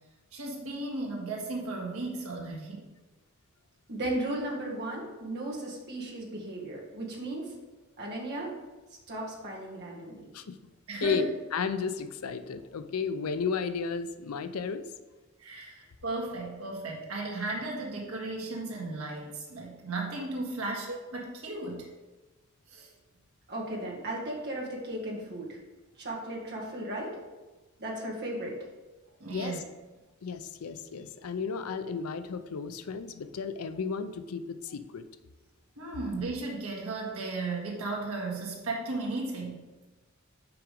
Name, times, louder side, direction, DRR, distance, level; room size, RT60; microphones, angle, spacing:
voice 1, 0.3-2.9 10.9-11.2 15.4-21.9 22.7-22.9 29.2-29.6 35.8-39.6, right 2 dB, 75° right, -1 dB, 1.6 m, -35 dB
voice 2, 3.9-7.5 8.0-8.6 9.1-10.3 23.5-25.6 26.0-27.2 27.8-28.6, right 1 dB, 50° right, -3 dB, 1.7 m, -36 dB
voice 3, 11.0-14.8 29.3-29.5 30.2-35.0, left 5 dB, 90° left, 10 dB, 0.5 m, -33 dB
5.8 x 5.0 x 5.2 m, 1.2 s
head